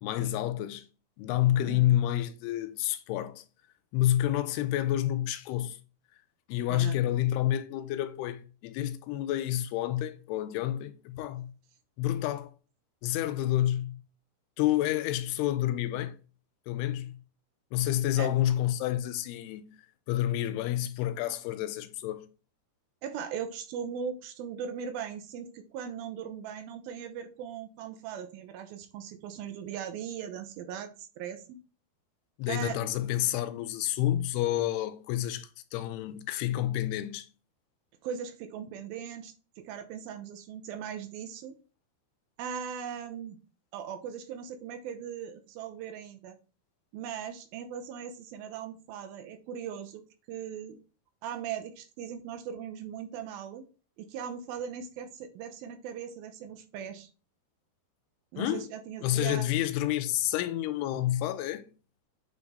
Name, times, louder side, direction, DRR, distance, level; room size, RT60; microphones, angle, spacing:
voice 1, 0.0-0.8 1.2-3.4 3.9-5.8 6.5-11.5 12.0-12.5 13.0-14.0 14.6-16.2 16.7-17.2 17.7-19.7 20.1-22.3 32.4-37.3 58.4-58.7 59.0-61.7, left 13 dB, 90° left, 2.6 m, -29 dB
voice 2, 23.0-31.6 32.5-32.8 38.0-41.5 42.4-43.4 43.7-46.4 46.9-50.0 50.3-50.8 51.2-53.7 54.0-57.1 58.3-59.5, right 8 dB, 75° right, 2.4 m, -39 dB
8.9 x 3.6 x 4.1 m
omnidirectional pair, 4.6 m